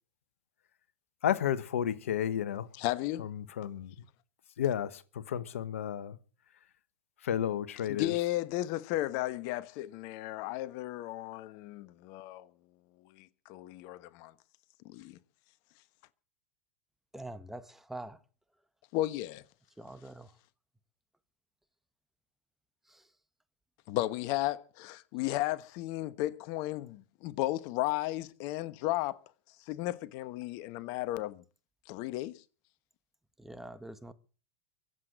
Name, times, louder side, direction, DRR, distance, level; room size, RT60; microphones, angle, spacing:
voice 1, 1.2-2.7 3.2-3.9 4.6-6.2 7.2-8.1, left 10 dB, 80° left, 1.2 m, -32 dB
voice 2, 2.7-3.3 7.9-12.5 13.2-14.3 14.8-15.2 18.9-19.4 23.9-29.2 29.7-31.4 31.9-32.3, left 16 dB, 55° left, 1.2 m, -34 dB
voice 3, 17.1-18.2 19.8-20.3 22.9-23.0 33.4-34.1, right 1 dB, 5° right, 1.5 m, -44 dB
23.0 x 8.2 x 7.6 m
hypercardioid pair, 100°, 7 cm